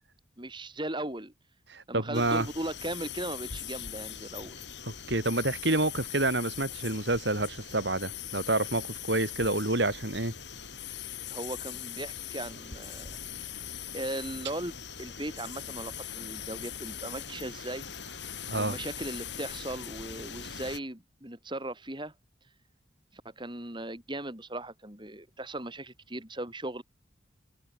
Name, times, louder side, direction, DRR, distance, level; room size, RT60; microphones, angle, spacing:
voice 1, 0.4-1.3 1.9-4.6 11.3-13.1 13.9-17.9 18.5-22.1 23.1-26.8, right 1 dB, 25° right, 3.9 m, -38 dB
voice 2, 1.7-2.5 4.9-10.3 18.5-18.8, right 2 dB, 60° right, 4.9 m, -28 dB
sound 1, 2.1-20.8, left 8 dB, 65° left, 4.5 m, -41 dB
open air
head